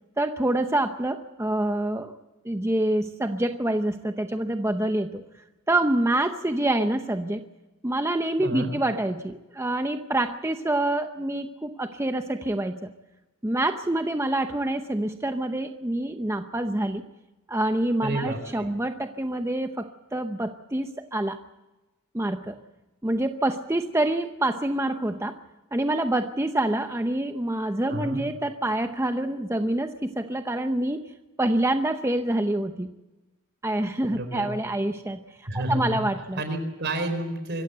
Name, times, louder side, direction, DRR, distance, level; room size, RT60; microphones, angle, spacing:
voice 1, 0.2-2.1 2.4-5.2 5.7-7.4 7.8-12.9 13.4-17.0 17.5-21.4 22.1-22.6 23.0-25.4 25.7-31.0 31.4-32.9 33.6-36.4, right 1 dB, 15° right, 7 dB, 0.7 m, -26 dB
voice 2, 18.0-18.7 27.9-28.2 34.0-34.5 35.5-36.1 36.4-37.6, right 1 dB, 55° right, 8 dB, 4.3 m, -30 dB
25.5 x 15.0 x 7.9 m, 1.1 s
head